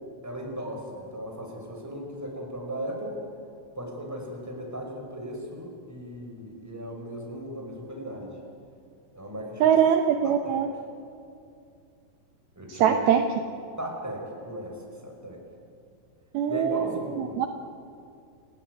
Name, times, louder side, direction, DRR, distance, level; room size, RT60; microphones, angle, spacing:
voice 1, 0.2-3.2 3.7-8.4 9.1-9.8 10.2-10.6 12.5-13.0 13.8-14.8 15.0-15.4 16.5-17.5, equal, 5° right, 0 dB, 4.5 m, -37 dB
voice 2, 9.6-10.7 12.7-13.3 16.3-17.5, right 8 dB, 80° right, 5 dB, 2.2 m, -23 dB
29.0 x 17.5 x 9.5 m, 2.5 s
omnidirectional pair, 5.7 m